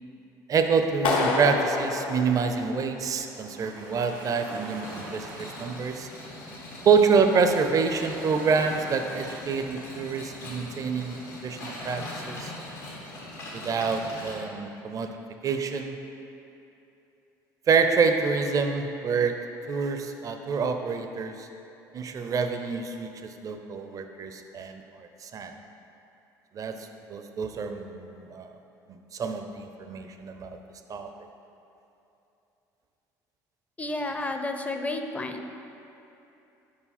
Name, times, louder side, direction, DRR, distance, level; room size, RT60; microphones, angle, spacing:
voice 1, 0.5-6.1 6.8-12.5 13.5-15.2 15.4-16.0 17.7-21.5 21.9-25.5 26.5-28.5 28.9-30.6 30.9-31.1, right 5 dB, 40° right, 6 dB, 0.5 m, -27 dB
Clapping, 1.0-3.1, left 3 dB, 70° left, 0.7 m, -27 dB
sound 1, 3.2-9.4, right 1 dB, 85° right, 1.4 m, -44 dB
sound 2, 4.8-14.3, left 1 dB, 90° left, 1.4 m, -41 dB
voice 2, 33.8-35.5, left 2 dB, 15° left, 5 dB, 0.5 m, -31 dB
5.0 x 4.8 x 4.2 m, 2.9 s
supercardioid pair, 75°, 9 cm